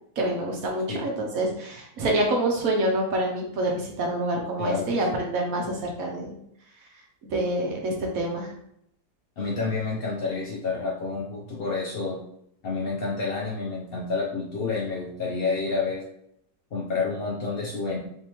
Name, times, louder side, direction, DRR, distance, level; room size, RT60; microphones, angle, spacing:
voice 1, 0.2-6.3 7.3-8.5, right 1 dB, 60° right, 0 dB, 1.1 m, -27 dB
voice 2, 4.6-5.0 9.4-12.2 12.6-16.0 16.7-18.0, left 4 dB, 65° left, -4 dB, 0.5 m, -29 dB
3.5 x 3.2 x 2.9 m, 0.74 s
omnidirectional pair, 1.8 m